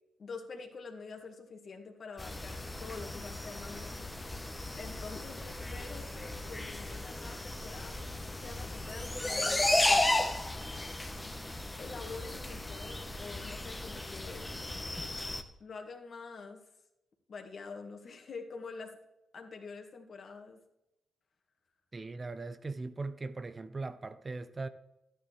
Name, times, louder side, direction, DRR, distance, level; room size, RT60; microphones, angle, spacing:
voice 1, 0.2-4.0 4.8-10.1 11.8-14.6 15.6-16.6 17.3-19.0 19.3-20.6, left 4 dB, 55° left, 1.9 m, -46 dB
sound 1, 2.2-15.4, left 2 dB, 15° left, 1.2 m, -34 dB
voice 2, 21.9-24.7, right 3 dB, 35° right, 0.8 m, -39 dB
12.0 x 9.6 x 3.4 m
supercardioid pair, 50°, 0 cm